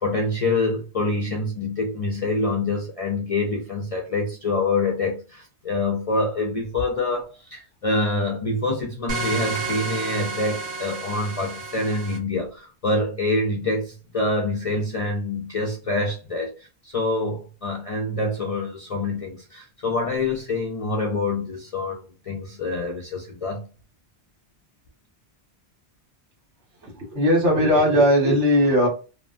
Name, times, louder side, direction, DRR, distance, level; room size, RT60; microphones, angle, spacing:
voice 1, 0.0-23.7, left 2 dB, 60° left, 0.3 m, -26 dB
sound 1, 9.1-12.2, right 3 dB, 70° right, 1.0 m, -31 dB
voice 2, 26.8-28.9, equal, 90° right, 1.5 m, -18 dB
2.8 x 2.1 x 2.4 m
omnidirectional pair, 1.2 m